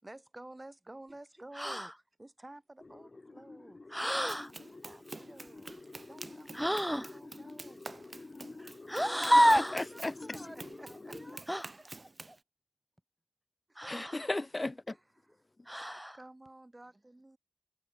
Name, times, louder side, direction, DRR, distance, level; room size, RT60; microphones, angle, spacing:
voice 1, 0.0-7.9 10.1-11.4 13.7-14.2 14.9-15.4 16.1-17.4, right 1 dB, 40° right, 7.4 m, -53 dB
sound 1, 1.5-1.9 3.9-4.5 6.5-7.1 8.9-9.8 11.5-11.7 13.8-14.3 15.7-16.2, equal, ahead, 0.8 m, -28 dB
Adriana Lopez - Spaceship, 2.8-11.4, left 3 dB, 80° left, 0.9 m, -49 dB
Run, 4.3-12.4, right 3 dB, 80° right, 2.7 m, -49 dB
voice 2, 8.6-11.5 11.7-12.4, right 1 dB, 15° right, 1.4 m, -51 dB
voice 3, 9.5-10.1 13.9-14.9, left 2 dB, 55° left, 0.5 m, -35 dB
wide cardioid pair, 55°, 0 cm